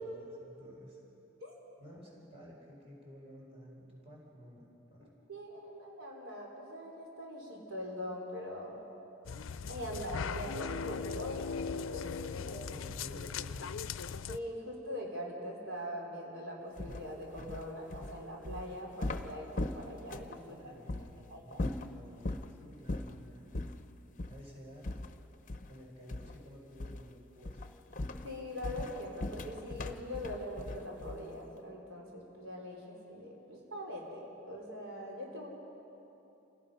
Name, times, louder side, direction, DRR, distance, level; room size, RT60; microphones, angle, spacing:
voice 1, 0.0-1.0 1.8-5.1 12.2-13.7 20.4-23.5 24.3-24.8 25.7-27.8, equal, 30° right, -3 dB, 4.7 m, -53 dB
voice 2, 5.3-8.8 9.7-12.3 14.3-20.7 21.3-21.6 28.2-35.5, equal, 80° right, -2 dB, 4.1 m, -42 dB
sound 1, 9.2-14.4, left 5 dB, 75° left, 0.5 m, -39 dB
sound 2, 16.8-20.4 20.9-21.1 21.5-22.5 22.9-23.2 23.5-23.8 24.2-24.4 24.8-25.8 26.1-26.4 26.8-27.1 27.4-31.4, left 2 dB, 40° left, 0.7 m, -39 dB
28.5 x 17.5 x 5.6 m, 2.9 s
head